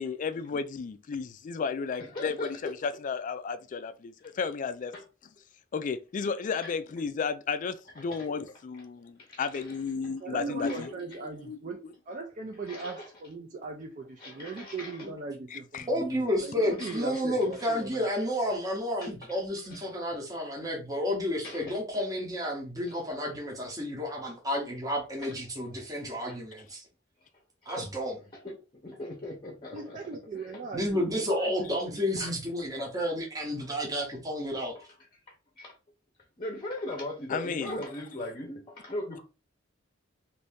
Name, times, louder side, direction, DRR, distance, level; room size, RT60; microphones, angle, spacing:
voice 1, 0.0-4.9 5.7-11.6 15.5-15.9 37.3-37.8, left 5 dB, 40° left, 0.3 m, -33 dB
voice 2, 2.1-2.7 4.9-5.0 6.6-6.7 8.0-8.3 9.2-9.8 10.6-10.9 12.7-13.1 14.2-15.1 16.8-17.2 17.6-17.7 19.0-19.1 19.7-19.8 21.4-21.8 25.2-25.3 25.7-25.8 26.3-26.4 27.6-27.8 28.3-28.5 28.8-30.0 30.3-30.7 32.2-32.3 32.7-32.9 34.7-34.9 35.3-35.8 36.4-39.2, left 1 dB, 25° left, 0.7 m, -40 dB
voice 3, 10.2-18.1 29.7-31.5 31.8-32.0, right 3 dB, 40° right, 0.4 m, -39 dB
voice 4, 15.9-26.8 27.7-28.2 30.7-34.8, equal, 20° right, 0.8 m, -31 dB
2.7 x 2.6 x 3.5 m
head